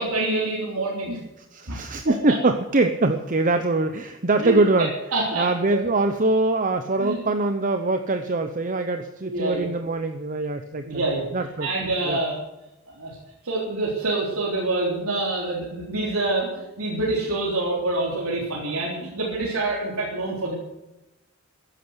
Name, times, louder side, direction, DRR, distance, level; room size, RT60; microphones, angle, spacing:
voice 1, 0.0-1.2 1.7-1.8 2.1-2.2 4.4-4.6 5.1-5.8 7.0-7.2 9.3-9.7 10.8-11.2 11.6-12.4 13.0-13.2 13.4-20.5, right 2 dB, 90° right, -5 dB, 3.8 m, -26 dB
voice 2, 1.4-4.9 5.4-11.0 11.3-11.7 12.0-12.2, right 2 dB, 40° right, 7 dB, 0.8 m, -23 dB
14.5 x 11.0 x 8.0 m, 0.97 s
head